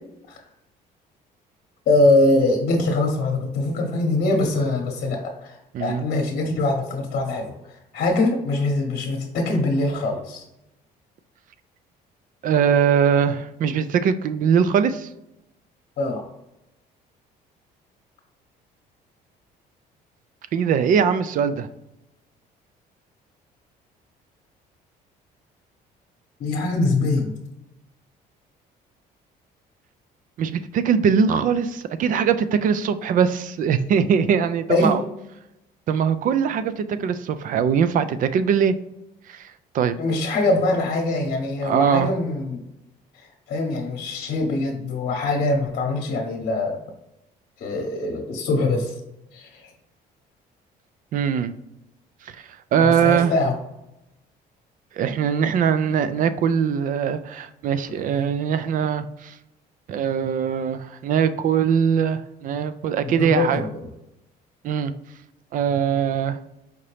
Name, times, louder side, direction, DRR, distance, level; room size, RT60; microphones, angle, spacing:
voice 1, 1.9-10.4 16.0-16.2 26.4-27.3 34.7-35.0 40.0-42.6 43.1-46.8 47.6-48.9 49.3-49.7 52.8-53.6 63.0-63.9, left 2 dB, 60° left, 0 dB, 0.9 m, -23 dB
voice 2, 12.4-15.1 20.5-21.7 30.4-35.0 35.9-38.7 39.3-40.0 41.6-42.1 51.1-51.5 52.7-53.3 55.0-59.3 59.9-63.6 64.6-64.9 65.5-66.4, right 7 dB, 50° right, 13 dB, 0.4 m, -21 dB
5.0 x 2.8 x 3.2 m, 0.89 s
cardioid pair, 110°, 17 cm